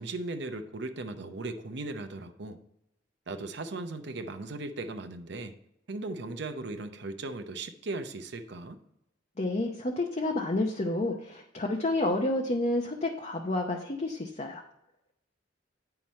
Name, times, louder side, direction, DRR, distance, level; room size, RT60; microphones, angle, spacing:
voice 1, 0.0-2.6 3.3-5.5 5.9-8.8, right 2 dB, 65° right, 8 dB, 0.8 m, -37 dB
voice 2, 9.4-14.6, left 2 dB, 35° left, 1 dB, 0.7 m, -30 dB
9.1 x 5.8 x 4.2 m, 0.83 s
head